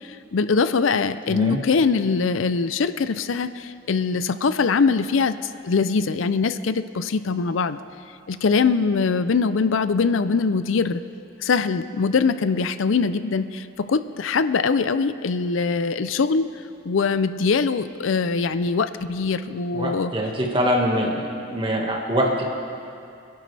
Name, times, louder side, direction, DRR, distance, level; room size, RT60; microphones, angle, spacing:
voice 1, 0.0-7.8 8.3-11.0 11.4-16.5 16.8-20.1, left 4 dB, 85° left, 13 dB, 0.5 m, -22 dB
voice 2, 1.3-1.6 19.7-21.2 21.5-22.5, equal, 25° right, -1 dB, 1.7 m, -23 dB
25.5 x 11.5 x 3.4 m, 2.5 s
head